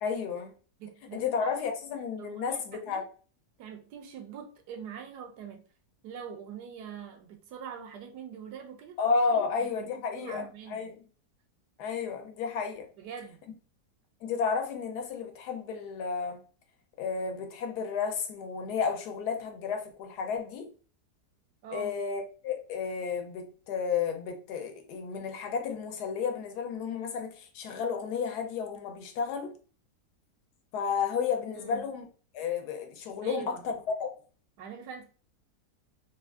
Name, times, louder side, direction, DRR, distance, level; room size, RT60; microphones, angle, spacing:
voice 1, 0.0-0.5 1.1-3.0 9.0-11.0 11.8-12.9 14.2-16.4 17.0-20.7 21.7-29.5 30.7-32.1 32.3-33.7 34.0-34.1, left 5 dB, 75° left, 1.1 m, -32 dB
voice 2, 0.8-1.6 2.2-3.0 3.6-5.6 6.0-9.0 9.6-10.9 13.0-13.4 21.6-22.0 31.5-31.9 33.2-33.7 34.6-35.0, right 7 dB, 85° right, 1.2 m, -43 dB
3.4 x 2.4 x 2.3 m
omnidirectional pair, 1.8 m